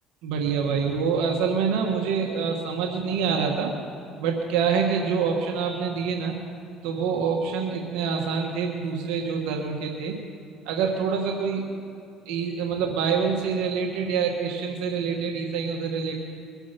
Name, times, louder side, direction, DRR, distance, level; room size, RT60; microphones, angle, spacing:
voice 1, 0.2-3.7 4.2-6.4 6.8-10.1 10.6-11.6 12.2-16.2, right 6 dB, 85° right, 1 dB, 1.6 m, -26 dB
23.0 x 9.0 x 5.9 m, 2.6 s
supercardioid pair, 90°, 0 cm